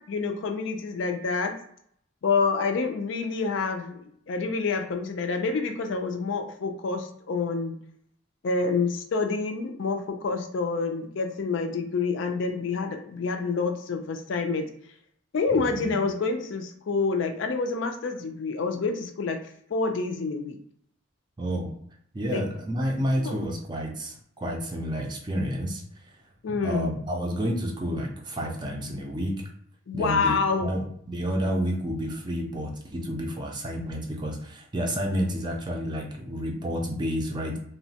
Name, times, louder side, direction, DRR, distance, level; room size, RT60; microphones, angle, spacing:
voice 1, 0.1-1.5 2.2-7.8 8.4-14.7 15.3-19.4 19.7-20.6 22.3-22.4 23.2-23.4 26.4-27.0 29.9-30.7, left 4 dB, 65° left, 5 dB, 0.4 m, -27 dB
voice 2, 15.5-15.9 21.4-21.7 22.1-25.8 26.5-29.5 29.9-37.6, equal, 20° right, 1 dB, 0.4 m, -30 dB
3.0 x 2.1 x 2.8 m, 0.68 s
head